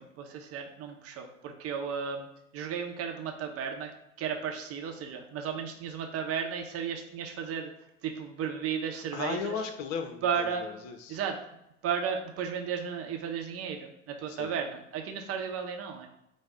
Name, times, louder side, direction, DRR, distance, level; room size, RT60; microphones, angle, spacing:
voice 1, 0.0-2.3 2.5-3.9 4.2-7.7 8.0-9.6 10.2-10.7 11.1-11.4 11.8-16.1, right 7 dB, 40° right, 3 dB, 0.7 m, -34 dB
voice 2, 8.9-11.2 14.3-14.5, left 6 dB, 50° left, 6 dB, 0.6 m, -36 dB
5.0 x 2.0 x 3.6 m, 0.82 s
hypercardioid pair, 75°, 37 cm